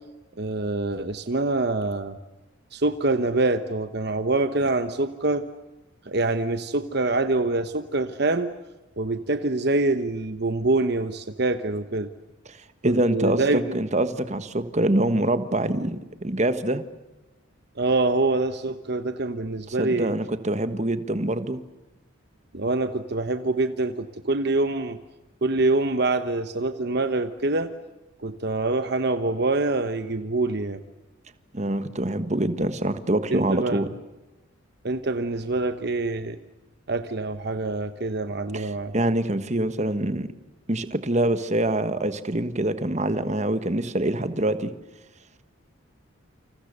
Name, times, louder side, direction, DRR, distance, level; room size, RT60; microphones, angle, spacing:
voice 1, 0.4-2.2 2.7-5.5 6.1-8.5 9.0-12.1 12.8-13.8 17.8-20.1 22.5-25.0 25.4-27.7 28.2-30.8 33.3-33.9 34.8-36.4 36.9-38.9, right 2 dB, 50° right, 9 dB, 1.1 m, -25 dB
voice 2, 12.8-16.8 19.7-21.6 31.5-33.9 38.5-40.3 40.7-44.7, right 1 dB, 35° right, 11 dB, 1.4 m, -25 dB
29.5 x 27.5 x 6.8 m, 1.1 s
head